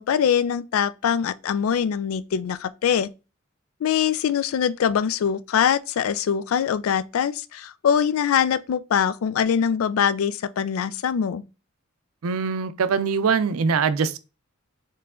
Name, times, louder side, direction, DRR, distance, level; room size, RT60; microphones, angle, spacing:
voice 1, 0.0-3.1 3.8-11.4, left 8 dB, 75° left, 0.3 m, -23 dB
voice 2, 12.2-14.2, right 5 dB, 85° right, 0.4 m, -23 dB
4.6 x 3.2 x 3.6 m
head